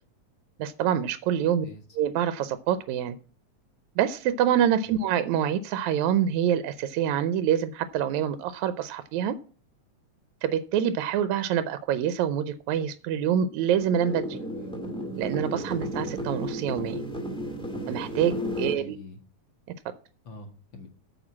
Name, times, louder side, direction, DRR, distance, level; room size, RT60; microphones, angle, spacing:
voice 1, 0.6-1.7 2.0-3.2 4.0-9.4 10.4-14.4 15.2-17.0 17.9-19.0, right 9 dB, 80° right, 12 dB, 1.9 m, -26 dB
voice 2, 1.4-1.8 4.8-5.0 14.4-14.8 18.6-19.2 20.3-20.9, left 2 dB, 45° left, 4 dB, 2.2 m, -45 dB
sound 1, 13.7-18.7, equal, 5° left, 1.0 m, -33 dB
8.9 x 6.7 x 7.2 m, 0.39 s
omnidirectional pair, 3.5 m